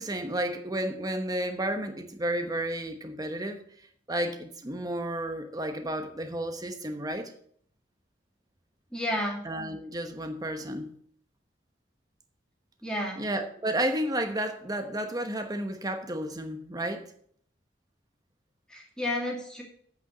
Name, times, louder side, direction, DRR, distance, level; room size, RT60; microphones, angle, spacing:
voice 1, 0.0-3.6 4.1-7.3 9.4-10.9 13.2-17.0, right 1 dB, 20° right, 1.1 m, -32 dB
voice 2, 8.9-9.4 12.8-13.2 18.7-19.6, left 1 dB, 5° left, 2.4 m, -31 dB
8.4 x 5.8 x 7.9 m
head